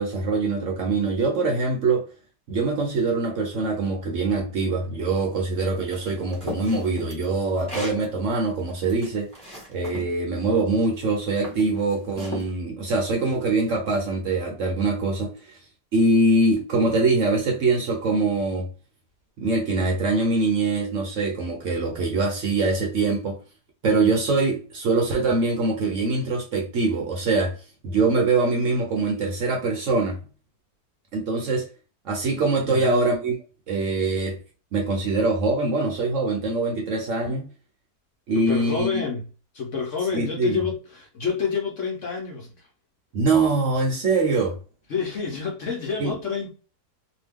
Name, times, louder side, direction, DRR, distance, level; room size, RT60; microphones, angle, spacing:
voice 1, 0.0-2.1 2.5-9.3 9.7-15.5 15.9-18.7 19.4-23.4 23.8-27.5 27.8-30.2 31.1-31.7 32.0-33.4 33.7-34.4 34.7-37.5 38.3-39.0 40.1-40.6 43.1-44.6 46.0-46.1, right 3 dB, 60° right, 0.9 m, -23 dB
sound 1, 5.9-8.0 8.6-10.1 10.8-11.0 11.4-12.5, left 1 dB, 5° left, 1.0 m, -36 dB
voice 2, 32.6-33.0 38.3-39.3 39.5-42.7 44.9-46.5, left 5 dB, 60° left, 0.9 m, -28 dB
2.7 x 2.3 x 3.4 m
omnidirectional pair, 1.8 m